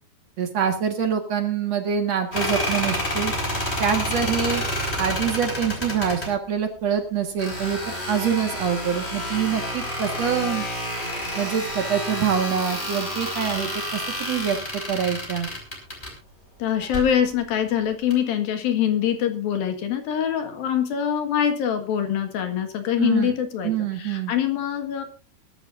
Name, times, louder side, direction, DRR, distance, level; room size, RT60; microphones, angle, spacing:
voice 1, 0.4-3.3 3.8-4.6 5.0-10.7 11.4-15.5 23.0-23.3 23.6-24.3, right 7 dB, 55° right, 5 dB, 2.0 m, -25 dB
sound 1, 2.3-6.3 7.4-16.1 16.8-17.1 18.1-18.2, equal, 15° left, 4.6 m, -29 dB
voice 2, 16.6-23.7 24.0-25.0, left 9 dB, 60° left, 6 dB, 3.1 m, -24 dB
22.5 x 12.5 x 2.6 m, 0.31 s
omnidirectional pair, 5.2 m